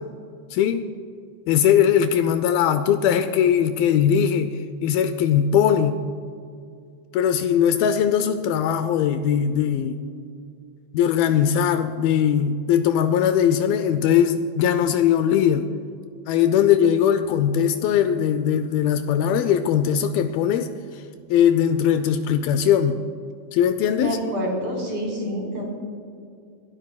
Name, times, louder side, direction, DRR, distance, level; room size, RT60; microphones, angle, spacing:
voice 1, 0.5-0.8 1.5-6.0 7.1-10.0 10.9-15.7 16.3-20.7 21.3-23.0 23.5-24.2, left 9 dB, 80° left, 10 dB, 2.3 m, -20 dB
voice 2, 23.9-25.7, equal, 55° right, -2 dB, 4.9 m, -27 dB
26.0 x 12.5 x 2.3 m, 2.3 s
omnidirectional pair, 4.4 m